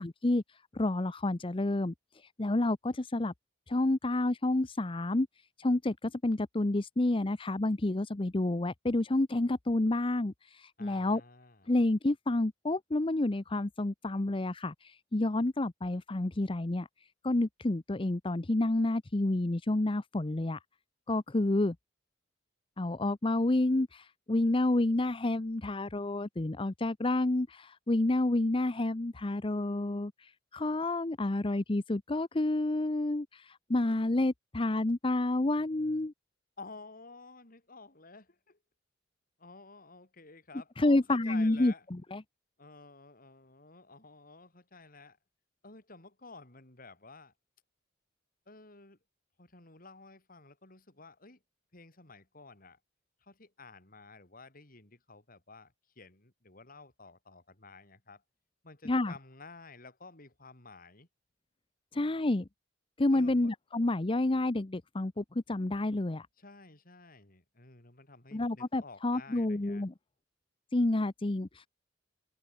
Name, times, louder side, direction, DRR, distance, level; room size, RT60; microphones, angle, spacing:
voice 1, 0.0-3.3 3.7-5.3 5.6-11.2 11.7-20.6 21.1-21.8 22.8-36.1 40.8-42.2 58.8-59.1 61.9-62.5 63.0-66.3 68.3-69.9 70.7-71.7, left 2 dB, 25° left, 0.7 m, -29 dB
voice 2, 10.8-11.7 36.6-38.6 39.4-41.9 42.6-45.2 45.6-47.3 48.5-49.0 49.4-51.4 51.7-52.8 53.2-58.2 58.6-61.1 63.1-63.5 66.4-69.9, left 3 dB, 50° left, 3.7 m, -52 dB
open air
head